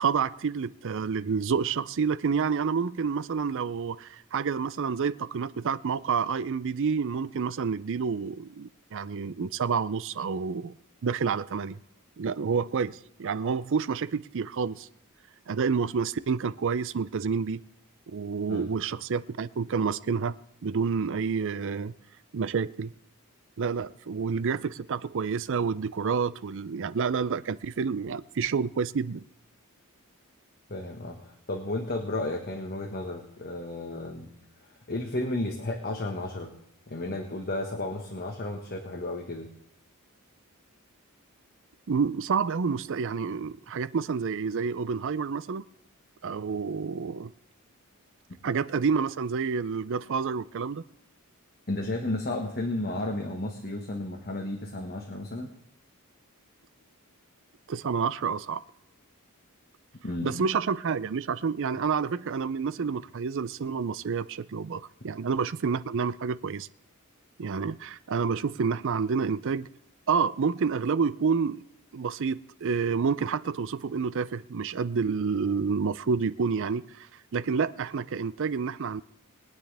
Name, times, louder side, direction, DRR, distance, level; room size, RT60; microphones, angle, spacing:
voice 1, 0.0-10.7 11.0-11.8 12.2-14.9 15.5-17.6 18.1-20.4 20.6-21.9 22.3-22.9 23.6-29.2 41.9-45.6 46.2-47.3 48.4-50.8 57.7-58.6 60.2-66.7 67.4-69.7 70.1-71.6 71.9-77.1 77.3-79.0, right 5 dB, 60° right, 0.5 m, -29 dB
voice 2, 30.7-34.3 34.9-36.5 36.9-39.5 51.7-55.5 60.0-60.3, left 2 dB, 45° left, 1.4 m, -33 dB
22.0 x 9.5 x 3.4 m
head